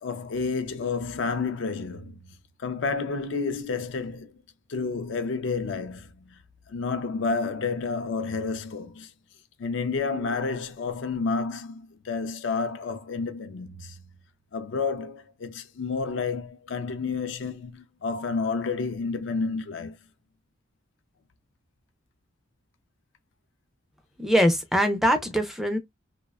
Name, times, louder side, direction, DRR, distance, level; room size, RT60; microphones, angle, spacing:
voice 1, 0.0-4.3 4.7-6.4 6.7-9.1 9.6-14.0 14.5-20.0, left 4 dB, 65° left, 0.4 m, -30 dB
voice 2, 24.2-25.8, equal, ahead, 0.3 m, -22 dB
2.6 x 2.1 x 2.2 m
head